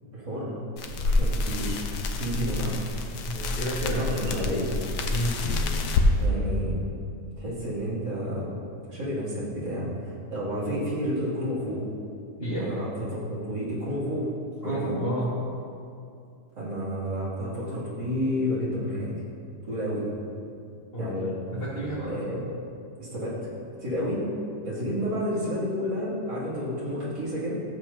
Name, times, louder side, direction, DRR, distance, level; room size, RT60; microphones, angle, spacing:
voice 1, 0.1-0.6 1.0-1.8 2.1-2.8 3.8-4.7 6.2-6.8 7.4-8.5 8.9-11.8 12.6-14.3 14.6-15.0 16.5-19.1 19.6-20.0 21.0-21.3 22.0-22.5 23.0-23.5 23.8-24.2 24.6-27.5, equal, 90° right, -9 dB, 3.4 m, -30 dB
sound 1, 0.8-6.1, left 3 dB, 75° left, 1.4 m, -28 dB
voice 2, 3.2-4.0 4.4-4.6 5.1-5.4 12.4-12.7 14.6-15.3 20.9-21.1 21.5-22.2, right 1 dB, 35° left, -12 dB, 2.3 m, -30 dB
14.5 x 7.7 x 2.8 m, 2.5 s
omnidirectional pair, 1.8 m